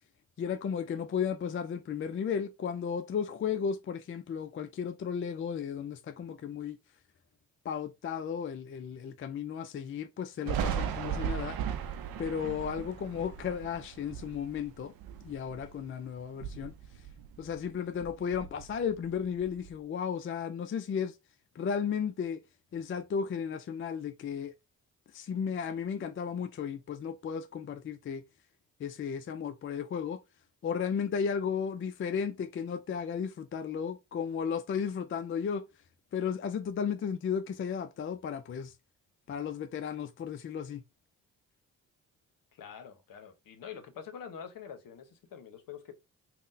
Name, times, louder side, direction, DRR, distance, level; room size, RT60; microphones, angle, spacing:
voice 1, 0.4-6.8 7.6-11.6 12.2-14.9 15.2-16.7 17.4-21.2 21.6-22.4 22.7-24.5 25.1-28.2 28.8-30.2 30.6-35.7 36.1-38.7 39.3-40.8, left 7 dB, 35° left, 0.4 m, -34 dB
Thunder, 10.5-15.9 16.3-17.7 18.0-19.7, right 8 dB, 65° right, 0.6 m, -37 dB
voice 2, 42.5-45.9, left 7 dB, 60° left, 0.8 m, -46 dB
3.5 x 2.2 x 2.5 m
hypercardioid pair, 45°, 39 cm